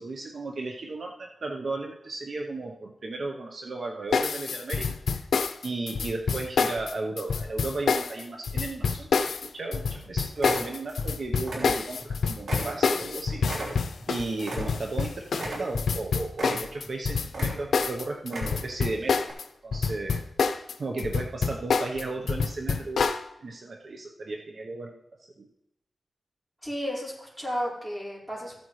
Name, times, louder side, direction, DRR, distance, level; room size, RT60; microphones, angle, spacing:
voice 1, 0.0-5.2 5.6-13.8 14.1-19.2 19.6-20.3 20.8-25.5, right 3 dB, 60° right, 2 dB, 0.9 m, -35 dB
sound 1, 4.1-19.4 19.7-23.2, left 5 dB, 90° left, 0.6 m, -27 dB
sound 2, 8.9-9.5 9.9-10.0 10.4-11.1 11.4-12.1 12.5-15.0 15.3-16.0 16.3-16.9 17.3-17.9 18.2-18.8 19.2-19.3, right 2 dB, 90° right, 3.1 m, -36 dB
voice 2, 26.6-28.6, equal, 5° right, -5 dB, 4.8 m, -33 dB
14.5 x 8.7 x 3.2 m, 0.84 s
cardioid pair, 70°, 0 cm